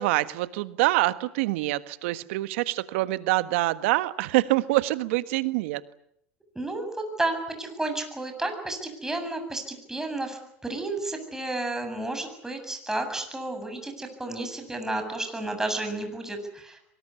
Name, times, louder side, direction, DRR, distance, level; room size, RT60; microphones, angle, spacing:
voice 1, 0.0-5.8, right 18 dB, 70° right, 13 dB, 1.5 m, -25 dB
voice 2, 6.5-16.8, right 2 dB, 5° right, 5 dB, 7.7 m, -32 dB
24.0 x 21.0 x 9.8 m, 0.73 s
hypercardioid pair, 95°, 7 cm